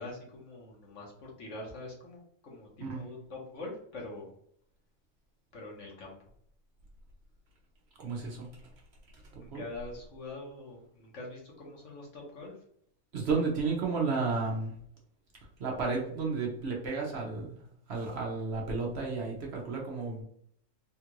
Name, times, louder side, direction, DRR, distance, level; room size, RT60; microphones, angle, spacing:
voice 1, 0.0-4.3 5.5-6.2 9.4-12.5, left 2 dB, 65° left, -2 dB, 1.3 m, -44 dB
voice 2, 8.0-8.5 9.3-9.6 13.1-14.7 15.6-17.5 17.9-20.2, right 4 dB, 55° right, -1 dB, 0.9 m, -32 dB
3.6 x 2.4 x 2.9 m, 0.67 s
omnidirectional pair, 1.4 m